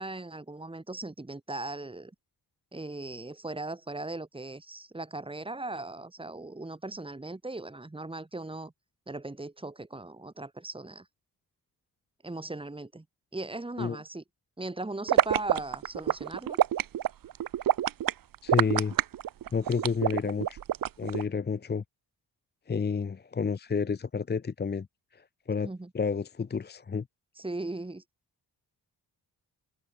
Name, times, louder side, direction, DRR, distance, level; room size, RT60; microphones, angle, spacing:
voice 1, 0.0-2.1 2.7-8.7 9.1-11.1 12.2-13.0 13.3-14.2 14.6-16.6 25.6-25.9 27.4-28.0, right 2 dB, 15° right, 2.3 m, -38 dB
sound 1, 15.1-21.2, right 11 dB, 60° right, 0.7 m, -26 dB
voice 2, 18.4-19.0 19.5-20.6 21.0-21.8 22.7-24.9 25.1-25.7 25.9-27.1, left 5 dB, 25° left, 0.7 m, -30 dB
cardioid pair, 80°, 39 cm